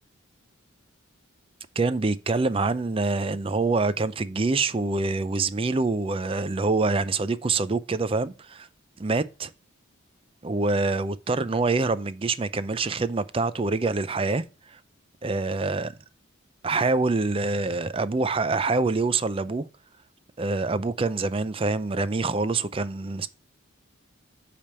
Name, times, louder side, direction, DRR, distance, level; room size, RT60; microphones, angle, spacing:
voice 1, 1.8-8.7 9.0-9.5 10.4-14.4 15.2-15.9 16.6-19.7 20.4-23.3, right 3 dB, 25° right, 0.4 m, -25 dB
8.5 x 3.4 x 6.7 m
head